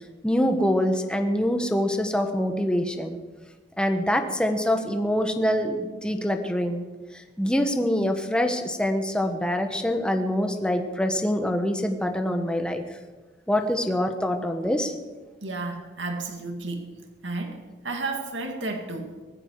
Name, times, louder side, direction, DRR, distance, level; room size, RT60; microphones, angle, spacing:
voice 1, 0.2-3.2 3.8-6.8 7.1-12.8 13.5-14.9, equal, 5° left, 5 dB, 1.3 m, -25 dB
voice 2, 15.4-16.9 17.2-17.6 17.8-19.1, right 3 dB, 85° right, 4 dB, 2.3 m, -32 dB
19.5 x 14.5 x 4.8 m, 1.3 s
head